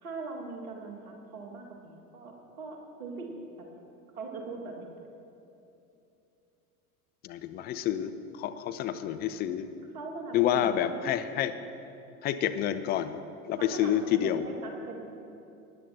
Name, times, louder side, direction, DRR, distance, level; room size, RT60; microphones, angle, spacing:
voice 1, 0.0-3.8 4.1-4.9 9.9-11.0 13.6-15.0, right 3 dB, 65° right, 1 dB, 1.9 m, -41 dB
voice 2, 7.2-9.7 10.3-11.5 12.2-13.2 13.4-14.4, left 11 dB, 25° left, 10 dB, 0.4 m, -28 dB
19.5 x 10.0 x 2.8 m, 2.8 s
figure-of-eight pair, 80°, 44 cm